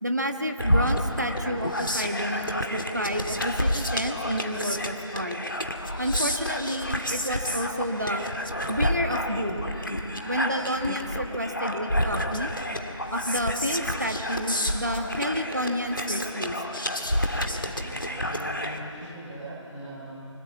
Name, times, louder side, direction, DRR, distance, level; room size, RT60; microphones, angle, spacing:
voice 1, 0.0-5.4 6.0-8.2 8.7-9.7 10.2-12.5 13.1-16.6, equal, 35° right, 5 dB, 1.4 m, -30 dB
sound 1, 0.6-18.8, equal, 40° left, 1.9 m, -29 dB
voice 2, 17.8-20.2, right 1 dB, ahead, -35 dB, 2.1 m, -40 dB
27.0 x 25.5 x 8.3 m, 2.9 s
figure-of-eight pair, 175°, 16 cm